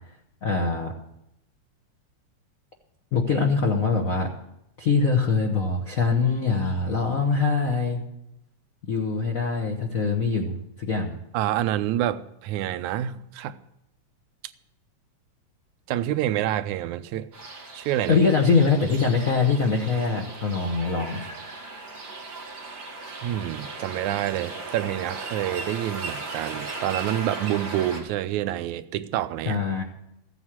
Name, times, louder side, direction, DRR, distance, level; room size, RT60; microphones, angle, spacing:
voice 1, 0.4-0.9 3.1-4.3 4.8-8.0 8.8-11.2 18.1-21.3 29.4-29.8, left 4 dB, 80° left, 2 dB, 0.7 m, -23 dB
voice 2, 11.3-13.6 15.9-17.3 17.8-18.2 23.2-29.6, right 12 dB, 85° right, 13 dB, 2.0 m, -27 dB
sound 1, 17.3-28.0, right 3 dB, 40° right, 2.6 m, -37 dB
15.0 x 8.0 x 7.3 m, 0.83 s
omnidirectional pair, 3.3 m